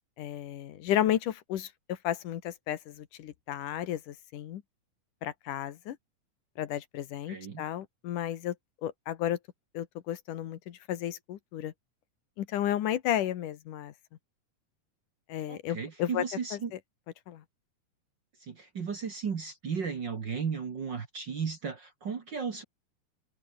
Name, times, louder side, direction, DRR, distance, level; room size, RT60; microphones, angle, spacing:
voice 1, 0.2-4.6 5.2-6.0 6.6-8.6 8.8-9.4 9.7-11.7 12.4-13.9 15.3-16.2 16.5-16.6 17.3-17.4, left 11 dB, 75° left, 2.9 m, -33 dB
voice 2, 7.3-7.6 15.5-16.7 18.4-22.6, right 6 dB, 40° right, 1.9 m, -35 dB
omnidirectional pair, 3.8 m